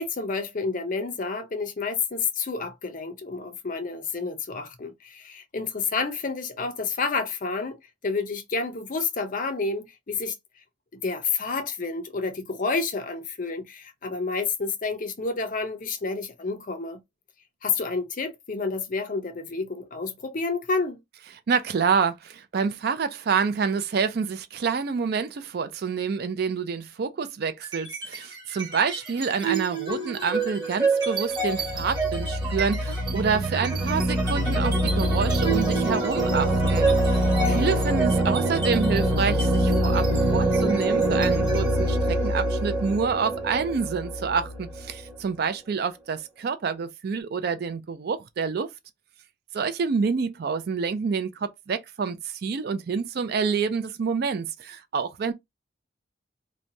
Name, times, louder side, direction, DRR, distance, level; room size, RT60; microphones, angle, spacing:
voice 1, 0.0-10.3 10.9-17.0 17.6-21.0 37.4-37.8, left 4 dB, 40° left, 0.5 m, -29 dB
voice 2, 21.5-40.1 40.3-48.7 49.5-55.3, right 5 dB, 50° right, 0.4 m, -28 dB
sound 1, 27.6-28.2 28.5-45.1, right 1 dB, 20° right, 1.0 m, -24 dB
2.9 x 2.2 x 2.6 m
head